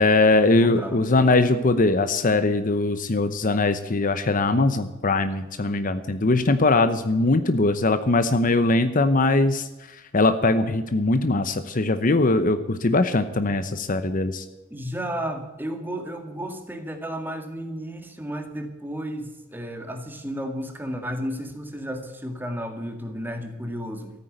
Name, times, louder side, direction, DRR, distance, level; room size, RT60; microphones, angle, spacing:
voice 1, 0.0-14.4, left 2 dB, 40° left, 10 dB, 0.8 m, -21 dB
voice 2, 0.5-1.1 14.7-24.1, equal, 10° right, 5 dB, 2.0 m, -33 dB
14.0 x 9.3 x 8.0 m, 1.1 s
head